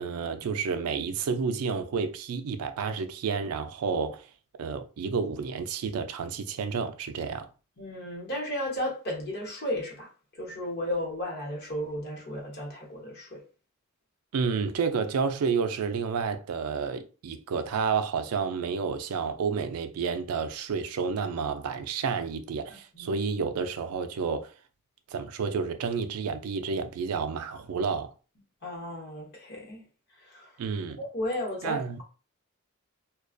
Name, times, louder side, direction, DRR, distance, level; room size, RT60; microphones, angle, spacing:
voice 1, 0.0-4.3 4.6-7.5 14.3-24.5 25.1-28.1 30.6-31.0 31.6-32.0, right 5 dB, 90° right, 0.4 m, -30 dB
voice 2, 7.8-13.4 22.7-23.1 28.6-29.9 30.2-30.6 31.0-32.0, left 1 dB, 50° left, 0.9 m, -34 dB
2.4 x 2.2 x 2.4 m
head